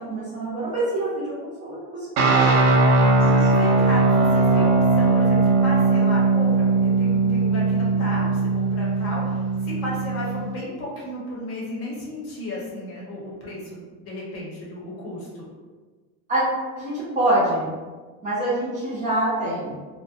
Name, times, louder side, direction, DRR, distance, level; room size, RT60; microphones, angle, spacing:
voice 1, 0.1-2.6 16.3-16.5 16.8-17.7 18.2-19.7, right 1 dB, 20° right, -9 dB, 0.5 m, -25 dB
sound 1, 2.2-10.4, right 3 dB, 80° right, 0.6 m, -19 dB
voice 2, 3.2-15.5, left 1 dB, 40° left, -5 dB, 0.8 m, -34 dB
2.5 x 2.1 x 2.7 m, 1.4 s
cardioid pair, 155°, 37 cm